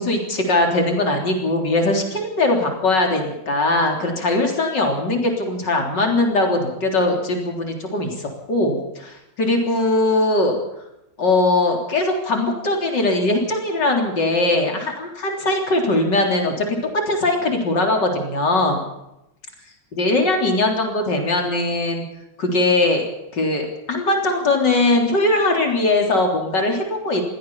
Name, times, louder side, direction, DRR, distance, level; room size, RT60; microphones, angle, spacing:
voice 1, 0.0-10.6 11.2-16.8 17.1-18.9 19.9-22.0 22.4-23.1 23.3-27.2, left 2 dB, 60° left, 2 dB, 4.2 m, -20 dB
22.5 x 16.0 x 7.2 m, 0.86 s
omnidirectional pair, 2.2 m